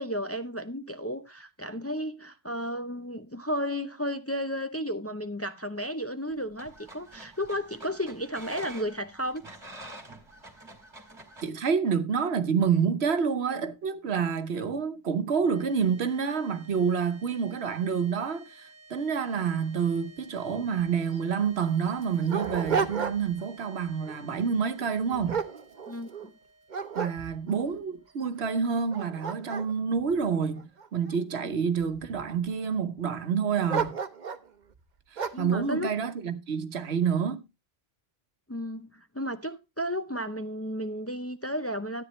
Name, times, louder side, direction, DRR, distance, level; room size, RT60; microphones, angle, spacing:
voice 1, 0.0-9.5 25.9-26.1 31.4-31.6 35.3-36.0 38.5-42.0, equal, 20° left, 0.5 m, -33 dB
sound 1, 6.3-11.5, right 1 dB, 25° right, 2.0 m, -47 dB
voice 2, 11.4-25.4 26.9-34.0 35.1-37.4, right 6 dB, 90° right, 1.2 m, -28 dB
sound 2, 15.4-29.8, right 3 dB, 5° right, 2.0 m, -55 dB
Dog, 20.8-20.9 21.1-21.2 21.8-23.5 23.9-24.2 24.8-26.3 26.7-27.6 28.2-28.3 28.8-31.1 31.8-32.4 33.7-34.5 35.2-35.5, right 6 dB, 50° right, 1.0 m, -33 dB
13.0 x 9.0 x 3.1 m
omnidirectional pair, 1.1 m